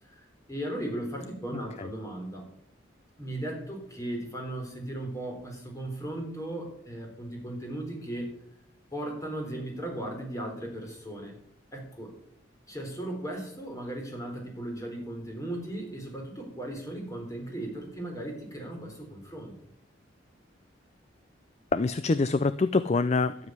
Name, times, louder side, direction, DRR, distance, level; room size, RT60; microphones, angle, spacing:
voice 1, 0.0-2.5 3.2-8.4 8.9-11.3 11.7-12.1 12.7-19.5, right 1 dB, 15° left, 1 dB, 4.0 m, -37 dB
voice 2, 1.5-1.9 21.7-23.5, left 3 dB, 35° left, 14 dB, 0.4 m, -26 dB
12.5 x 7.4 x 9.7 m, 0.72 s
head